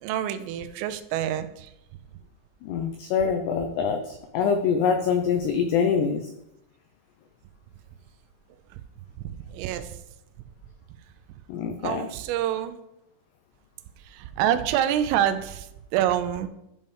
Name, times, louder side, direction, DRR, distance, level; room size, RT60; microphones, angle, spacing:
voice 1, 0.0-1.7 9.5-9.9 11.8-12.8 14.1-15.7 15.9-16.5, right 11 dB, 90° right, 11 dB, 3.3 m, -26 dB
voice 2, 2.6-6.3 11.5-12.1, left 6 dB, 90° left, 5 dB, 2.4 m, -25 dB
11.5 x 5.4 x 5.4 m, 0.84 s
omnidirectional pair, 5.7 m